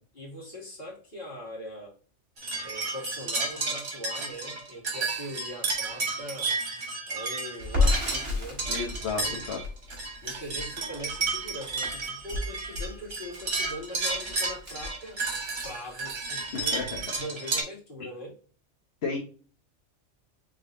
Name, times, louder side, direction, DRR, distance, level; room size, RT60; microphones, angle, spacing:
voice 1, 0.1-1.9 2.6-6.5 7.1-8.7 8.9-9.5 10.2-15.2 15.6-16.9 17.1-18.3, left 1 dB, 45° left, -5 dB, 2.3 m, -41 dB
sound 1, 2.4-17.6, right 3 dB, 75° right, 1.6 m, -32 dB
Crackle, 7.6-15.7 16.0-16.1 16.4-17.2, left 3 dB, 55° right, 2.5 m, -32 dB
voice 2, 8.7-9.6 16.5-17.0 19.0-19.2, left 4 dB, 60° left, -1 dB, 1.3 m, -32 dB
4.9 x 3.9 x 2.5 m, 0.39 s
omnidirectional pair, 1.2 m